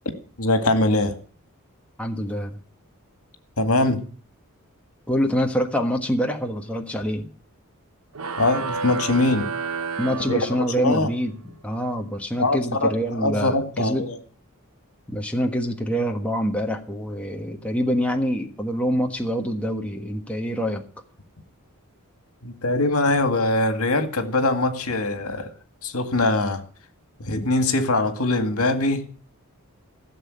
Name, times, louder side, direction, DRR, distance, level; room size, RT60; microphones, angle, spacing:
voice 1, 0.4-1.2 3.6-4.0 8.4-9.5 10.3-11.1 12.4-14.2 22.4-25.5 25.8-26.6 27.2-29.0, left 2 dB, 75° left, 2.1 m, -22 dB
voice 2, 2.0-2.6 5.1-7.3 10.0-14.0 15.1-20.8, equal, 5° left, 1.4 m, -25 dB
sound 1, 8.1-11.0, right 4 dB, 75° right, 1.0 m, -30 dB
16.0 x 7.4 x 8.6 m
head